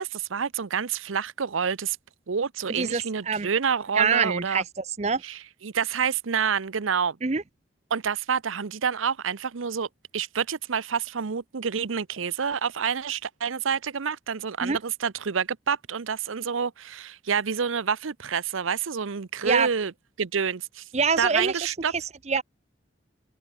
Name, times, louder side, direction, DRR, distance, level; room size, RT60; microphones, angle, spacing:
voice 1, 0.0-2.0 2.3-4.6 5.2-7.2 7.9-9.9 10.1-19.9 20.2-20.8 21.2-21.9, right 6 dB, 90° right, 0.7 m, -28 dB
voice 2, 2.7-3.5 3.9-5.2 7.2-7.4 14.6-14.8 19.4-19.7 20.9-21.7 22.3-22.4, right 5 dB, 35° right, 0.7 m, -25 dB
open air
head